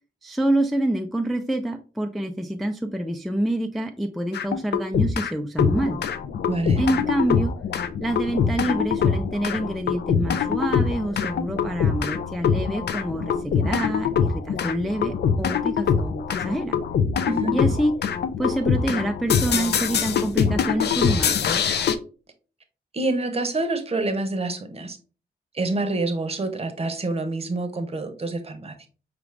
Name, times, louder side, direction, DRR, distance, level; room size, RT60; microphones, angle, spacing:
voice 1, 0.2-6.0 6.8-7.6 8.0-16.8 17.5-17.9 18.4-21.6, right 1 dB, ahead, 4 dB, 0.3 m, -27 dB
sound 1, 4.3-5.3 5.6-21.9, left 7 dB, 75° left, 0.4 m, -24 dB
voice 2, 6.5-6.8 17.3-17.6 22.9-25.0 25.5-28.9, right 2 dB, 35° right, 6 dB, 0.8 m, -27 dB
4.9 x 2.4 x 3.2 m, 0.37 s
wide cardioid pair, 100°, 17 cm